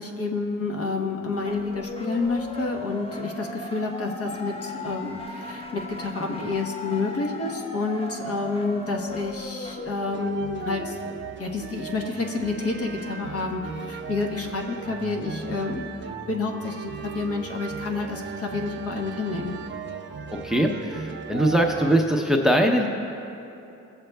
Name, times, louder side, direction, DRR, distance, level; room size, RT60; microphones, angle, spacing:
voice 1, 0.0-15.9 16.3-19.6, left 3 dB, 50° left, 2 dB, 1.0 m, -29 dB
sound 1, 0.8-10.8, left 2 dB, 20° left, 1.0 m, -37 dB
sound 2, 10.1-22.0, right 5 dB, 40° right, 0.6 m, -37 dB
voice 2, 20.3-22.9, right 1 dB, ahead, 3 dB, 0.6 m, -21 dB
16.0 x 7.5 x 2.2 m, 2.8 s
cardioid pair, 90°, 30 cm